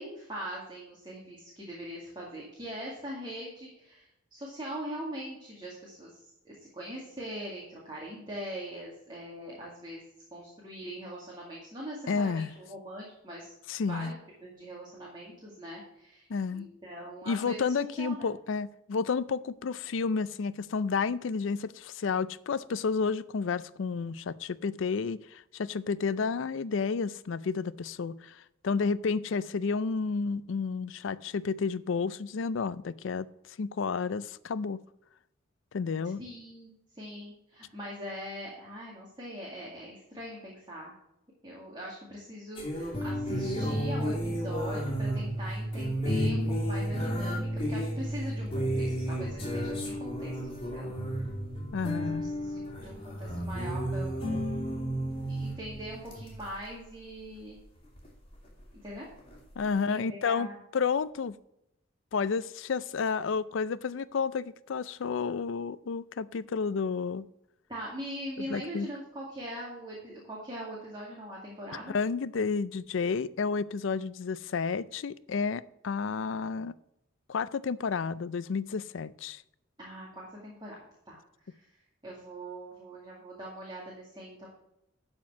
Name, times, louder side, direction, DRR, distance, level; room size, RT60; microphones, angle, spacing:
voice 1, 0.0-6.2 6.4-13.5 13.9-14.1 14.4-18.3 36.2-40.9 41.4-50.9 51.8-54.4 55.3-57.6 58.8-59.1 59.6-60.6 67.7-72.0 79.8-80.7 81.1-81.2 81.5-81.6 82.0-84.5, equal, 25° right, -4 dB, 2.2 m, -42 dB
voice 2, 12.1-12.5 13.7-14.1 16.3-16.7 17.3-33.3 33.6-34.8 35.7-36.2 51.7-52.3 59.6-61.3 62.1-67.3 68.5-68.9 71.9-76.7 77.3-79.4, left 5 dB, 70° left, 17 dB, 0.4 m, -31 dB
sound 1, 42.6-56.6 58.0-58.1 59.2-59.4, equal, 25° left, 2.7 m, -32 dB
12.0 x 4.5 x 6.0 m, 0.82 s
head